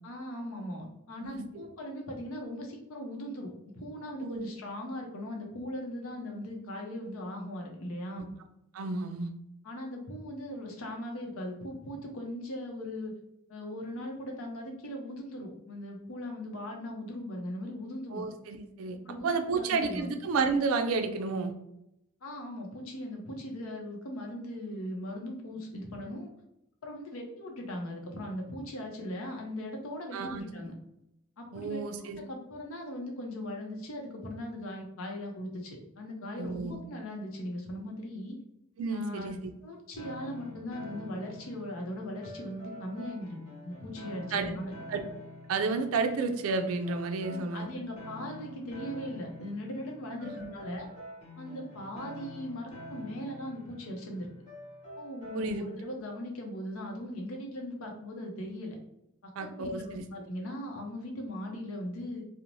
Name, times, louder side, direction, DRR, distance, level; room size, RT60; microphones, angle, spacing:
voice 1, 0.0-8.3 9.6-13.1 13.5-18.3 19.1-20.1 22.2-26.3 26.8-30.7 31.4-38.4 38.9-43.4 43.6-44.7 47.3-50.9 51.4-54.3 55.0-58.8 59.2-62.2, left 1 dB, 80° left, 1 dB, 0.6 m, -39 dB
voice 2, 1.2-1.7 4.2-4.4 8.1-8.2 8.7-9.3 18.1-19.0 19.2-21.5 30.1-30.4 31.5-32.2 36.4-36.8 38.8-39.5 44.3-44.5 44.9-45.0 45.5-47.7 50.2-50.4 55.3-55.7 59.4-60.0, right 4 dB, 75° right, 6 dB, 0.4 m, -31 dB
sound 1, 40.0-55.9, left 1 dB, 30° left, 1.0 m, -47 dB
2.6 x 2.0 x 3.0 m, 0.83 s
head